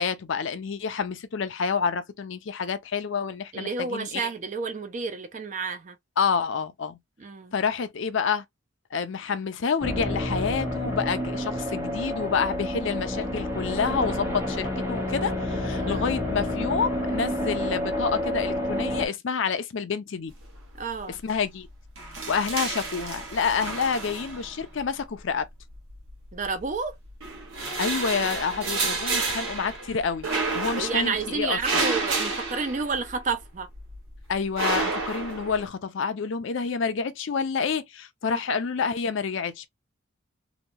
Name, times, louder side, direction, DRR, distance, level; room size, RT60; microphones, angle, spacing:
voice 1, 0.0-4.3 6.2-7.0 7.5-8.4 8.9-20.3 21.1-21.7 22.3-25.4 27.8-30.3 30.5-31.8 34.3-39.7, left 5 dB, 65° left, 0.5 m, -28 dB
voice 2, 3.5-6.0 7.2-7.5 15.7-16.2 20.8-21.2 26.3-26.9 30.6-33.7 38.2-38.4, right 4 dB, 35° right, 0.5 m, -30 dB
sound 1, 9.8-19.1, left 1 dB, 15° right, 0.9 m, -29 dB
sound 2, 20.4-20.9 21.2-21.4 21.7-24.8 25.7-26.7 27.1-33.4 33.7-35.7, right 3 dB, 75° right, 1.1 m, -30 dB
2.9 x 2.2 x 2.6 m
head